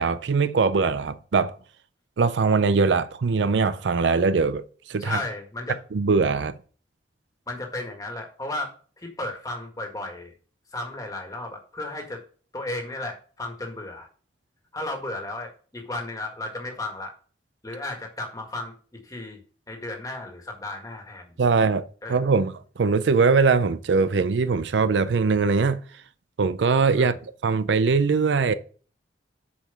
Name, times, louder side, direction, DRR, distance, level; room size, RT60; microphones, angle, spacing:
voice 1, 0.0-1.5 2.2-5.2 5.9-6.5 21.4-25.8 26.4-27.1 27.4-28.5, right 4 dB, 80° right, 0.5 m, -21 dB
voice 2, 5.0-5.8 7.5-10.3 10.7-12.2 12.5-14.1 14.7-17.1 17.6-19.4 19.7-21.6 22.0-22.4 26.9-27.2, left 2 dB, 20° left, 1.7 m, -34 dB
7.0 x 5.0 x 6.7 m
head